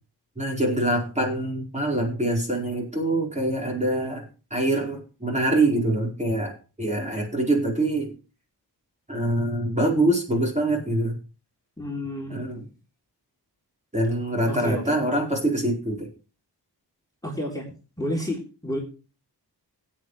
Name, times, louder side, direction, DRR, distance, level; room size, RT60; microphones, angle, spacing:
voice 1, 0.4-8.1 9.1-11.2 12.3-12.7 13.9-16.1, right 1 dB, 15° right, 0 dB, 4.5 m, -25 dB
voice 2, 11.8-12.3 14.5-15.0 17.2-17.7 18.0-18.8, left 1 dB, 10° left, -1 dB, 3.6 m, -30 dB
17.0 x 9.2 x 3.2 m, 0.34 s
wide cardioid pair, 75°, 40 cm